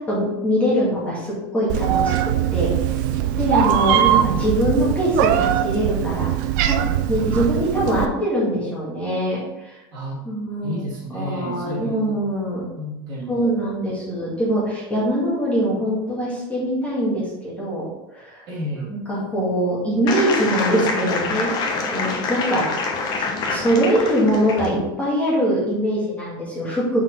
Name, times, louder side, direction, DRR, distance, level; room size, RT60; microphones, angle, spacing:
voice 1, 0.0-3.0 3.4-6.3 6.7-6.8 7.1-9.8 10.2-10.8 11.1-12.6 13.3-17.9 18.1-18.4 19.1-22.7 23.2-27.0, equal, 10° left, -7 dB, 2.1 m, -23 dB
Meow, 1.7-8.1, right 10 dB, 60° right, 0.6 m, -21 dB
voice 2, 10.6-12.2 12.8-13.6 18.5-18.9, equal, 35° right, -6 dB, 2.5 m, -31 dB
sound 1, 20.1-24.8, left 4 dB, 35° left, 1.1 m, -26 dB
5.7 x 4.4 x 5.4 m, 1.0 s
supercardioid pair, 160°, 11 cm